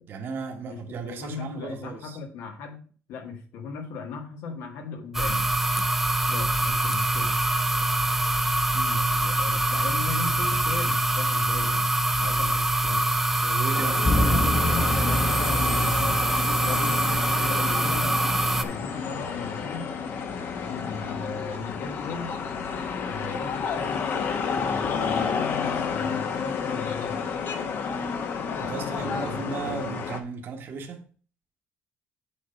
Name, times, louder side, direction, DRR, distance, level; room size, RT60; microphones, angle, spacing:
voice 1, 0.1-2.2 8.7-9.1 13.4-14.1 28.6-31.1, right 4 dB, 50° right, 1.3 m, -35 dB
voice 2, 0.7-2.8 3.1-5.5 6.3-7.4 9.1-13.1 14.1-14.6 15.0-16.2 16.5-18.2 18.6-19.9 20.6-22.4 22.7-25.3 25.9-27.3 28.7-29.9, left 5 dB, 85° left, 1.7 m, -37 dB
sound 1, 5.1-18.6, right 2 dB, 5° right, 0.5 m, -24 dB
sound 2, 13.7-30.2, left 6 dB, 50° left, 1.0 m, -31 dB
sound 3, 14.0-23.1, left 1 dB, 25° left, 1.0 m, -31 dB
7.3 x 4.2 x 5.6 m
cardioid pair, 140°, 5 cm